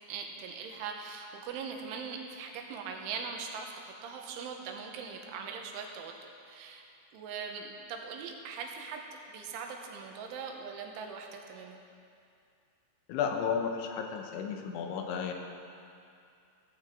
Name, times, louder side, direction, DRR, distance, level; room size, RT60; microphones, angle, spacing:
voice 1, 0.1-6.1 6.5-6.8 7.1-9.0 9.3-11.8, right 5 dB, 85° right, 2 dB, 3.5 m, -41 dB
voice 2, 13.1-15.3, left 7 dB, 80° left, 4 dB, 3.2 m, -33 dB
16.0 x 15.0 x 3.8 m, 2.5 s
omnidirectional pair, 5.5 m